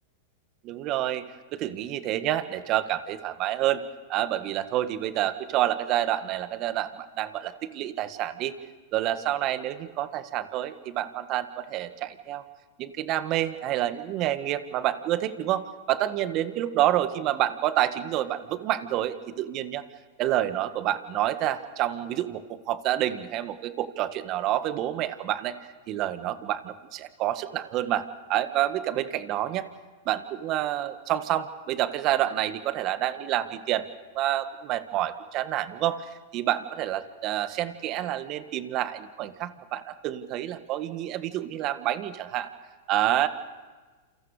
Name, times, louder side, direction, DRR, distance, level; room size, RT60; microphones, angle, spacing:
voice 1, 0.6-3.8 4.1-8.5 8.9-12.4 12.8-19.8 20.2-25.5 25.9-29.6 30.0-33.8 34.1-36.0 36.3-42.5 42.9-43.3, right 13 dB, 45° right, 11 dB, 1.6 m, -28 dB
30.0 x 28.5 x 5.0 m, 1.3 s
hypercardioid pair, 115°, 0 cm